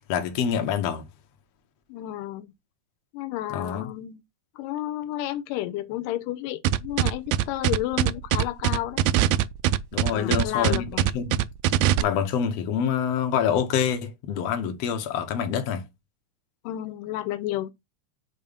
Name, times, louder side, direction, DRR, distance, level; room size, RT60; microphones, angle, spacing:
voice 1, 0.1-1.0 3.5-3.9 9.9-10.9 11.1-11.4 12.0-15.8, left 8 dB, 60° left, 2.0 m, -26 dB
voice 2, 1.9-2.5 3.1-4.2 4.6-9.0 10.1-11.1 16.6-17.7, left 14 dB, 85° left, 2.2 m, -31 dB
sound 1, 6.6-12.0, right 13 dB, 80° right, 1.7 m, -22 dB
6.9 x 3.0 x 5.1 m
omnidirectional pair, 3.7 m